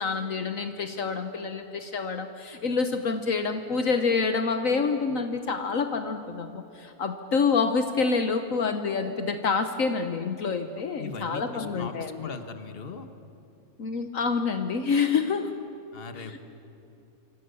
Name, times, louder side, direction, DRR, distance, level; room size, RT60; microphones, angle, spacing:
voice 1, 0.0-12.3 13.8-15.5 16.1-16.4, left 5 dB, 65° left, 7 dB, 1.5 m, -27 dB
voice 2, 11.0-11.9 12.2-13.1 15.9-16.4, left 4 dB, 40° left, 8 dB, 1.6 m, -39 dB
26.5 x 25.0 x 7.0 m, 2.8 s
omnidirectional pair, 1.5 m